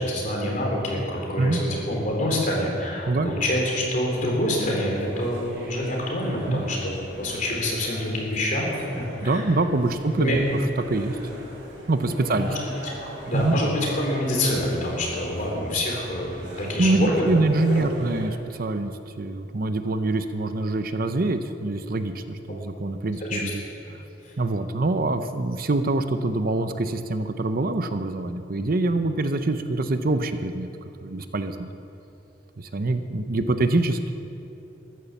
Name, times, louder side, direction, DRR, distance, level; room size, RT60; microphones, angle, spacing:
voice 1, 0.0-8.8 9.2-9.4 10.2-10.4 12.4-12.5 13.0-17.3 17.7-17.8 22.5-22.6 23.3-23.5 33.4-33.5, left 1 dB, 45° left, -1 dB, 3.5 m, -26 dB
sound 1, 4.6-18.3, equal, 80° right, 3.8 m, -40 dB
voice 2, 9.2-11.2 11.9-12.5 13.3-13.6 16.5-23.6 24.4-30.7 31.0-31.7 32.6-34.1, right 2 dB, 50° right, 9 dB, 0.7 m, -25 dB
14.5 x 11.0 x 7.1 m, 2.7 s
head